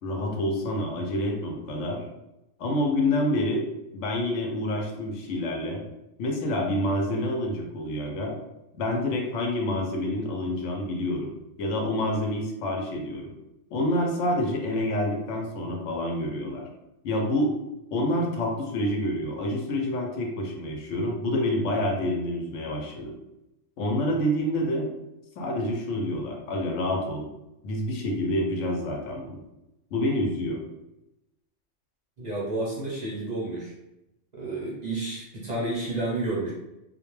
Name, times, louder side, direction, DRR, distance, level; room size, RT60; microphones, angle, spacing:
voice 1, 0.0-2.1 2.6-3.7 3.9-5.8 6.2-8.4 8.7-11.3 11.6-13.3 13.7-16.7 17.0-17.5 17.9-23.1 23.8-24.9 25.4-27.3 27.6-29.4 29.9-30.6, left 1 dB, 75° left, 1 dB, 0.9 m, -27 dB
voice 2, 32.2-33.7 34.3-36.5, right 2 dB, 45° right, -6 dB, 0.6 m, -30 dB
2.3 x 2.1 x 3.0 m, 0.92 s
omnidirectional pair, 1.3 m